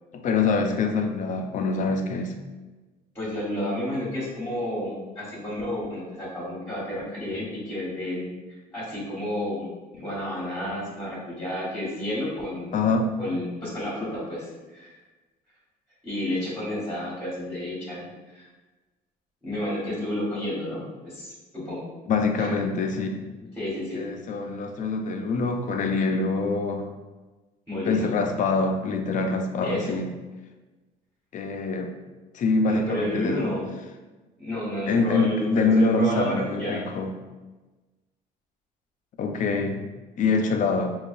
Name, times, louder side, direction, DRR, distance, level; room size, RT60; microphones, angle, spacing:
voice 1, 0.1-2.4 12.7-13.1 22.1-23.3 23.9-26.9 27.8-30.1 31.3-31.9 32.3-33.5 34.9-37.1 39.2-39.8 40.2-41.0, left 3 dB, 50° left, 5 dB, 0.5 m, -25 dB
voice 2, 3.1-12.7 13.2-15.0 16.0-18.1 18.3-18.5 19.4-21.8 22.4-22.5 23.6-24.1 27.7-28.1 29.6-29.9 32.7-33.6 34.4-36.8, left 1 dB, 10° left, -8 dB, 1.4 m, -31 dB
5.2 x 2.4 x 2.5 m, 1.2 s
cardioid pair, 110°, 17 cm